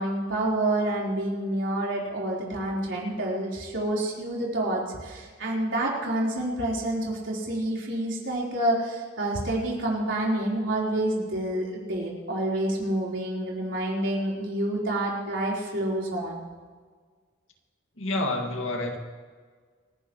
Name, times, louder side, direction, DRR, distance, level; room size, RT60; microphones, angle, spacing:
voice 1, 0.0-16.4, right 1 dB, 70° right, -4 dB, 4.1 m, -28 dB
voice 2, 18.0-19.0, left 2 dB, 85° left, 3 dB, 2.1 m, -28 dB
28.0 x 11.0 x 3.1 m, 1.5 s
head